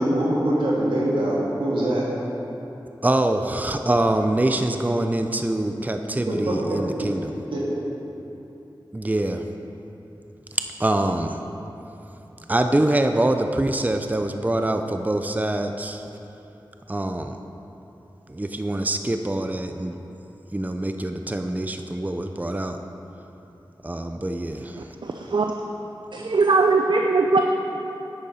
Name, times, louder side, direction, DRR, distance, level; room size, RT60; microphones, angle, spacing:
voice 1, 0.0-2.1 6.3-7.1 7.5-7.7, right 1 dB, 90° right, -5 dB, 2.0 m, -23 dB
voice 2, 3.0-7.3 8.9-9.4 10.8-11.4 12.5-16.0 16.9-17.4 18.3-20.0 20.5-22.8 23.8-24.9, right 1 dB, 20° right, 6 dB, 0.5 m, -24 dB
voice 3, 25.0-25.5 26.1-27.4, right 3 dB, 65° right, 3 dB, 0.5 m, -20 dB
10.5 x 8.9 x 4.3 m, 3.0 s
cardioid pair, 40°, 8 cm